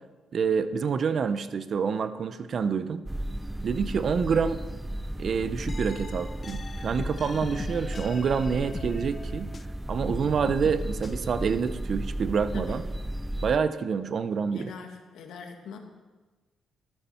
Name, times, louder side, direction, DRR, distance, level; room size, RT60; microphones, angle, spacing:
voice 1, 0.3-3.0 3.6-4.6 5.2-9.5 9.9-12.8 13.4-14.7, right 6 dB, 50° right, 12 dB, 0.8 m, -27 dB
sound 1, 3.1-13.6, right 1 dB, 10° right, 0.5 m, -34 dB
sound 2, 5.7-9.8 10.1-11.1, left 5 dB, 35° left, 0.5 m, -41 dB
voice 2, 12.5-12.9 14.5-15.8, left 5 dB, 80° left, 4 dB, 1.8 m, -42 dB
13.0 x 12.5 x 4.5 m, 1.3 s
cardioid pair, 90°, 0 cm